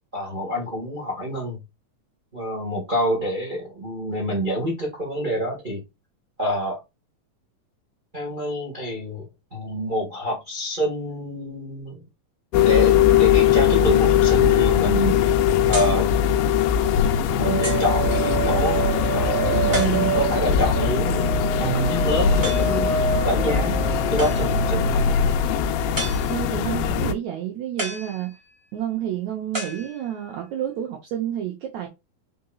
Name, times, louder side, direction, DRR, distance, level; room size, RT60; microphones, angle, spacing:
voice 1, 0.1-1.6 2.3-5.8 6.4-6.8 8.1-12.0 12.6-15.3 15.7-16.1 17.3-23.0 23.2-23.8 24.1-25.2, equal, 60° right, 0.5 m, -27 dB
sound 1, 12.5-27.1, left 8 dB, 80° left, 2.2 m, -20 dB
sound 2, 15.7-16.1 16.8-16.9 17.6-18.0 19.7-20.4 22.4-22.8 24.2-24.7 25.9-26.6 27.8-28.6 29.5-30.4, right 1 dB, 15° right, 0.8 m, -33 dB
sound 3, 17.4-26.6, right 3 dB, 40° right, 1.5 m, -28 dB
voice 2, 26.3-28.4 28.7-31.9, right 11 dB, 80° right, 1.6 m, -29 dB
5.2 x 3.9 x 2.3 m
omnidirectional pair, 4.2 m